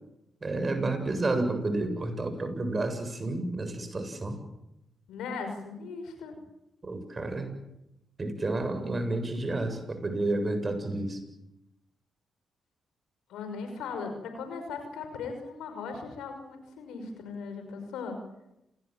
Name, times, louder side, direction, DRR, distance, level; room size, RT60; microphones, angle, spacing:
voice 1, 0.4-4.4 6.8-7.5 8.2-11.2, right 2 dB, 35° right, 8 dB, 7.5 m, -30 dB
voice 2, 5.1-6.4 13.3-18.2, left 5 dB, 80° left, 7 dB, 5.7 m, -38 dB
28.0 x 20.0 x 8.9 m, 0.87 s
supercardioid pair, 45°, 0 cm